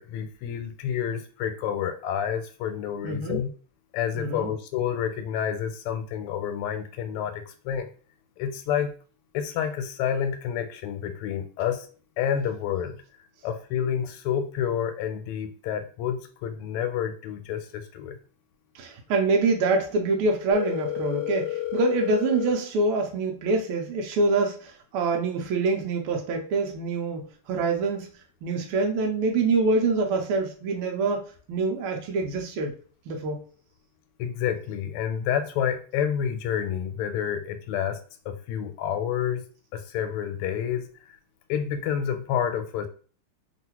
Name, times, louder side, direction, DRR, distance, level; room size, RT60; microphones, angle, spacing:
voice 1, 0.0-3.5 3.9-7.9 8.4-9.0 9.3-11.9 12.2-13.0 13.4-18.2 34.2-38.0 38.2-39.4 39.7-41.2 41.5-42.9, left 8 dB, 90° left, 8 dB, 1.5 m, -29 dB
voice 2, 3.0-3.4 4.1-4.5 18.7-28.1 28.4-32.7 33.1-33.4, right 3 dB, 85° right, 1 dB, 1.5 m, -25 dB
Telephone, 20.5-22.5, left 13 dB, 70° left, 1.1 m, -30 dB
3.7 x 2.4 x 2.8 m, 0.40 s
omnidirectional pair, 2.4 m